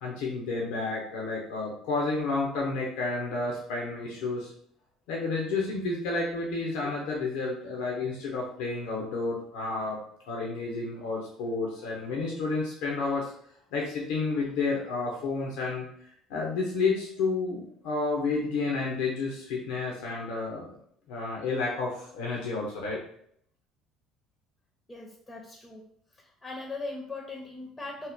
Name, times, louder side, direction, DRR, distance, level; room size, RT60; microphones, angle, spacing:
voice 1, 0.0-4.5 5.1-10.0 10.3-13.3 13.7-20.8 21.1-23.0, left 3 dB, 75° left, -2 dB, 0.6 m, -31 dB
voice 2, 24.9-25.8 26.1-28.1, left 3 dB, 15° left, 0 dB, 0.7 m, -39 dB
2.6 x 2.1 x 3.6 m, 0.67 s
hypercardioid pair, 65°, 0 cm